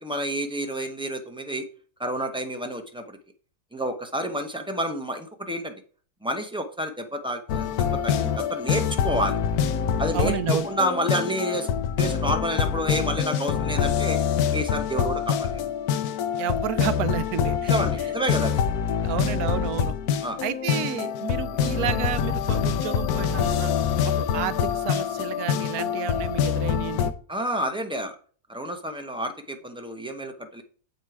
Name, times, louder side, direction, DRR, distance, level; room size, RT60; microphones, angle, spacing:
voice 1, 0.0-1.6 2.0-3.2 3.7-5.8 6.2-7.7 8.0-9.4 10.0-11.7 12.0-14.2 14.5-15.6 17.7-18.6 20.2-20.4 27.3-28.2 28.5-30.6, equal, 5° right, 5 dB, 0.4 m, -29 dB
sound 1, 7.5-27.1, left 8 dB, 75° left, 1.1 m, -25 dB
voice 2, 10.1-10.7 16.4-18.1 19.0-20.0 20.4-23.7 24.0-27.1, right 11 dB, 75° right, 14 dB, 1.1 m, -31 dB
7.6 x 5.2 x 4.7 m, 0.42 s
omnidirectional pair, 1.6 m